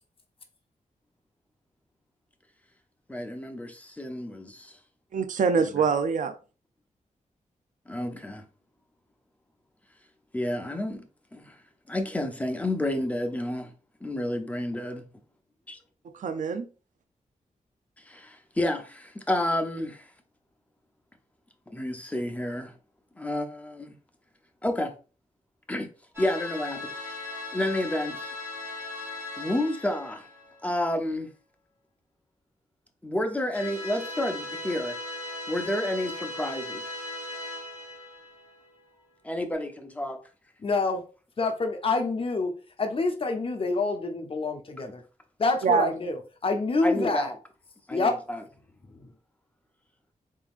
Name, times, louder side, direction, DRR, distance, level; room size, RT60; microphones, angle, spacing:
voice 1, 3.1-4.8 7.9-8.4 10.3-11.0 11.3-11.5 11.9-13.7 14.0-15.0 15.7-15.8 18.1-20.0 21.7-22.7 23.2-23.9 24.6-24.9 25.7-25.9 26.2-27.2 27.5-28.4 29.4-30.2 30.6-31.3 33.0-35.0 35.5-37.0 39.2-40.2 46.8-47.4 47.9-48.4, left 1 dB, 10° left, 0.6 m, -30 dB
voice 2, 5.1-6.3 16.0-16.7 45.6-45.9, right 5 dB, 75° right, 0.5 m, -24 dB
sound 1, 26.1-30.7 33.5-38.8, left 2 dB, 20° right, 2.2 m, -38 dB
voice 3, 40.6-41.0 41.4-42.5 42.8-45.0 45.4-46.2 46.4-47.3 47.9-48.1, left 3 dB, 45° left, 0.8 m, -26 dB
4.0 x 3.7 x 2.5 m
wide cardioid pair, 120°, 13 cm